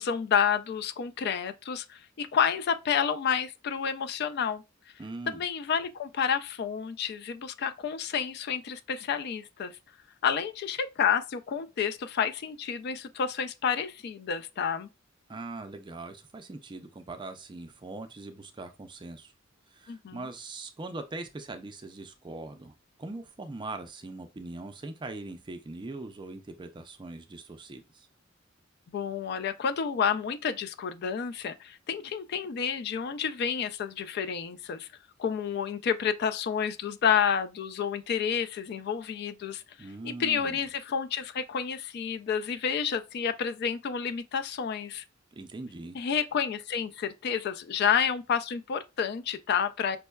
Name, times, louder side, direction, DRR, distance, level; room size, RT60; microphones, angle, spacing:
voice 1, 0.0-4.6 5.3-9.7 10.2-14.9 19.9-20.3 28.9-34.9 35.2-39.6 40.0-45.0 45.9-50.0, left 7 dB, 55° left, 0.3 m, -30 dB
voice 2, 5.0-5.4 15.3-19.3 19.7-22.7 23.0-28.1 39.8-40.6 45.3-46.0, right 2 dB, 25° right, 0.4 m, -41 dB
5.2 x 2.2 x 2.2 m
head